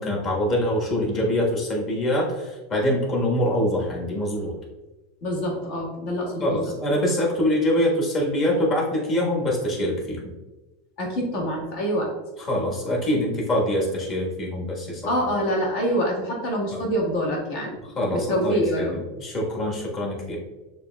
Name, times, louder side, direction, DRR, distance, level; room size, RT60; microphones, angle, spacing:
voice 1, 0.0-4.5 6.4-10.2 12.4-15.0 16.7-16.8 17.9-20.4, left 1 dB, 30° left, -3 dB, 1.3 m, -24 dB
voice 2, 5.2-6.6 11.0-12.1 15.1-17.7 18.1-19.0, equal, 60° left, -1 dB, 1.3 m, -25 dB
6.6 x 2.6 x 2.3 m, 1.1 s
supercardioid pair, 125°, 0 cm